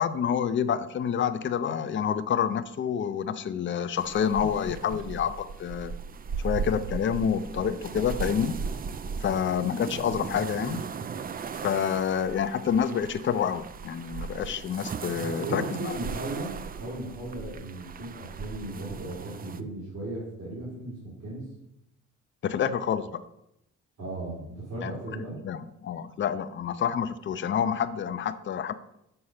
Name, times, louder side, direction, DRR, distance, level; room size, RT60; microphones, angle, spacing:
voice 1, 0.0-5.9 6.4-8.6 9.2-10.8 11.6-15.9 22.4-23.2 24.8-24.9 25.4-28.7, left 8 dB, 40° left, 11 dB, 0.5 m, -28 dB
sound 1, 4.0-19.6, right 5 dB, 30° right, 0.4 m, -37 dB
voice 2, 15.3-21.5 24.0-25.3, right 2 dB, 65° right, -7 dB, 3.1 m, -36 dB
6.6 x 4.6 x 5.7 m, 0.81 s
cardioid pair, 90°, 30 cm